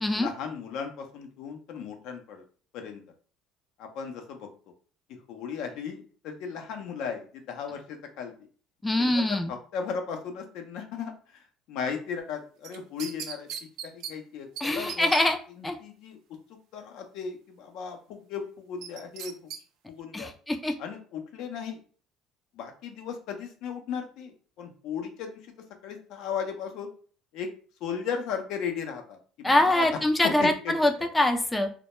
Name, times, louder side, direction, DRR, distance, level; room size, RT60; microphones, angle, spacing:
voice 1, 0.2-2.4 2.7-3.0 3.8-4.5 5.1-8.3 9.0-13.5 13.8-15.1 15.8-16.2 16.7-19.5 19.9-20.3 20.8-21.8 22.5-25.4 25.8-26.9 27.3-27.5 27.8-29.9 30.4-30.7, left 6 dB, 70° left, 4 dB, 0.5 m, -36 dB
voice 2, 8.8-9.5 14.6-15.4 15.6-15.8 20.1-20.7 29.4-31.7, left 1 dB, 10° left, 5 dB, 0.3 m, -24 dB
sound 1, 12.6-14.1 14.6-14.7 14.9-15.2 18.8-19.6 20.0-20.1, right 8 dB, 70° right, 0.4 m, -37 dB
2.1 x 2.1 x 2.9 m, 0.42 s
supercardioid pair, 85°, 0 cm